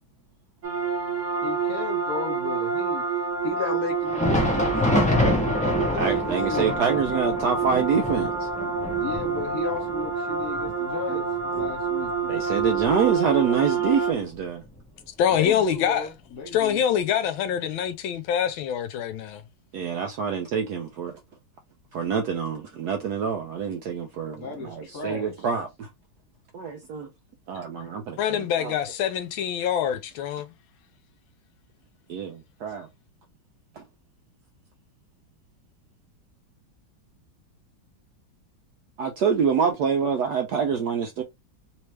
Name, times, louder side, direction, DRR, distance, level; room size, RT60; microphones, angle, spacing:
sound 1, 0.6-14.1, right 5 dB, 50° right, 1.0 m, -28 dB
voice 1, 1.4-3.0 3.4-4.7 5.2-6.9 9.0-11.3 11.5-12.1 15.3-16.8 24.3-25.5, left 5 dB, 50° left, 1.9 m, -34 dB
Thunder, 4.0-13.4 13.7-13.9 14.6-14.8 15.8-15.9, left 1 dB, 10° left, 0.4 m, -28 dB
voice 2, 5.9-8.5 12.2-14.6 19.7-21.1 21.9-25.9 26.5-27.1 27.5-28.7 32.1-32.9 33.8-33.9 39.0-41.2, right 6 dB, 75° right, 0.9 m, -26 dB
voice 3, 15.2-16.0 16.5-19.4 28.2-30.5, left 9 dB, 80° left, 1.4 m, -25 dB
3.4 x 3.1 x 3.1 m
omnidirectional pair, 2.2 m